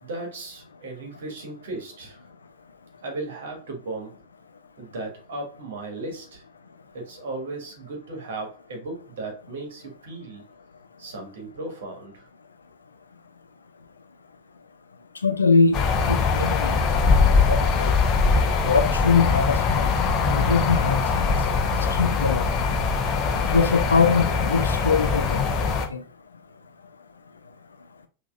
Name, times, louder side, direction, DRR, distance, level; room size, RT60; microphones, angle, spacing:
voice 1, 0.0-2.3 3.0-4.2 4.8-6.4 6.9-10.4 11.0-12.3, right 2 dB, 60° right, 1.6 m, -36 dB
voice 2, 15.2-15.8 16.1-18.0 18.6-19.9 20.2-21.4 21.9-22.5 23.5-26.0, left 5 dB, 75° left, 0.5 m, -23 dB
sound 1, 15.7-25.9, left 4 dB, 35° left, 0.7 m, -22 dB
5.7 x 2.9 x 2.4 m
figure-of-eight pair, 90°, 0 cm